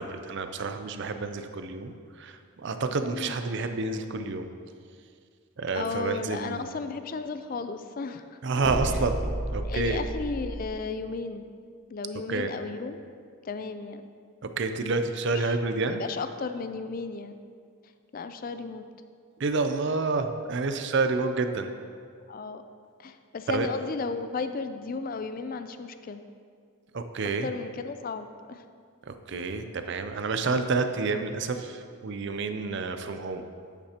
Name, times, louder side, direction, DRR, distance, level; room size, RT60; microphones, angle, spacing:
voice 1, 0.0-4.5 5.6-6.7 8.4-10.0 12.3-12.5 14.4-16.0 19.4-21.7 23.5-23.7 26.9-27.5 29.1-33.4, right 3 dB, 55° right, 8 dB, 0.5 m, -29 dB
voice 2, 5.7-8.4 9.6-11.5 11.9-13.0 13.4-14.0 15.4-15.5 15.9-17.4 18.1-18.8 22.3-22.6 23.0-26.2 27.4-28.6 29.3-29.5, left 4 dB, 40° left, 9 dB, 0.3 m, -34 dB
sound 1, 8.6-10.7, right 1 dB, 15° right, 1.1 m, -31 dB
9.9 x 8.2 x 2.9 m, 2.2 s
head